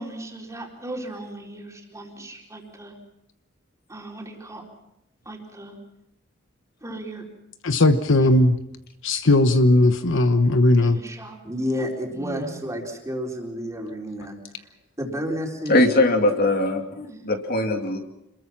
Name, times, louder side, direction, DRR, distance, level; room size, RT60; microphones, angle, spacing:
voice 1, 0.0-2.9 3.9-4.6 5.3-5.8 6.8-7.2 8.2-8.3 10.8-14.7 15.0-15.8 17.1-17.3, equal, 15° right, 0 dB, 4.0 m, -33 dB
voice 2, 7.6-8.6 9.0-11.0, left 2 dB, 65° left, 10 dB, 1.0 m, -17 dB
voice 3, 15.7-18.0, left 2 dB, 50° left, 4 dB, 2.5 m, -21 dB
27.0 x 21.5 x 6.0 m, 0.86 s
head